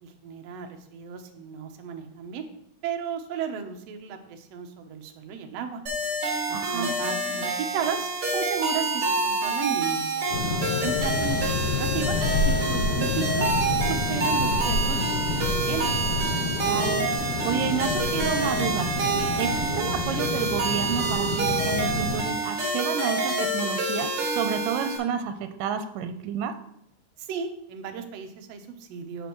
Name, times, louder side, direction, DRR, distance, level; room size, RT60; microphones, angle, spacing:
voice 1, 0.0-2.5 2.8-5.8 6.5-12.2 12.4-13.5 13.8-15.8 27.2-29.3, right 6 dB, 70° right, 4 dB, 1.6 m, -34 dB
sound 1, 5.9-25.0, right 3 dB, 45° right, 2.4 m, -27 dB
voice 2, 6.5-7.0 16.6-17.0 17.4-26.6, right 7 dB, 90° right, 9 dB, 2.2 m, -30 dB
sound 2, 10.3-22.2, left 3 dB, 70° left, 2.7 m, -28 dB
10.5 x 6.2 x 3.0 m, 0.76 s
omnidirectional pair, 3.8 m